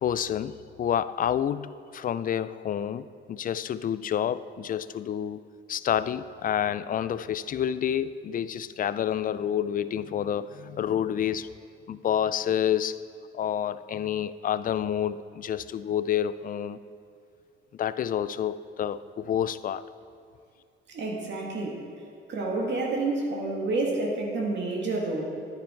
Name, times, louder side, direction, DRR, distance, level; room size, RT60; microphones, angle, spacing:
voice 1, 0.0-5.4 5.7-11.5 11.9-13.0 13.3-16.8 17.7-19.8, left 9 dB, 45° left, 15 dB, 0.4 m, -29 dB
voice 2, 20.9-21.8 22.3-25.3, right 2 dB, 65° right, -2 dB, 2.1 m, -29 dB
10.5 x 10.0 x 4.5 m, 2.3 s
cardioid pair, 90°, 20 cm